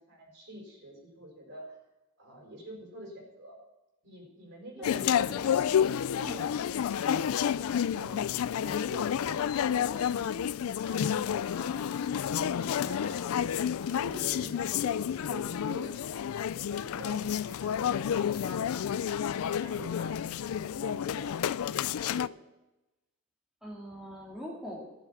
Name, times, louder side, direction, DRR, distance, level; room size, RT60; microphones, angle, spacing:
voice 1, 0.1-1.8 2.2-3.6 4.0-5.7 7.8-8.2 8.5-11.8 12.3-13.2 13.5-16.2 16.5-22.4, equal, 55° right, 0 dB, 4.5 m, -47 dB
sound 1, 4.8-22.3, left 8 dB, 70° left, 0.3 m, -30 dB
voice 2, 4.8-5.6 6.2-6.6 7.0-7.3 23.6-24.9, equal, 5° right, -3 dB, 2.0 m, -42 dB
13.0 x 7.2 x 7.0 m, 0.99 s
head